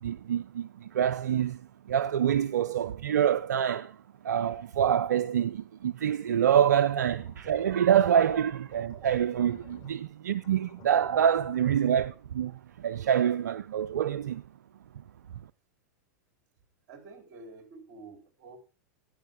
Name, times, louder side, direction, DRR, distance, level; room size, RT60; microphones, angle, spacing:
voice 1, 0.0-1.6 1.9-4.0 4.2-14.4, right 9 dB, 80° right, 0.5 m, -26 dB
sound 1, 6.8-10.0 10.3-12.1, left 7 dB, 40° left, 3.5 m, -55 dB
voice 2, 16.9-18.6, right 3 dB, 55° right, 3.8 m, -49 dB
13.5 x 9.9 x 3.6 m
hypercardioid pair, 100°, 9 cm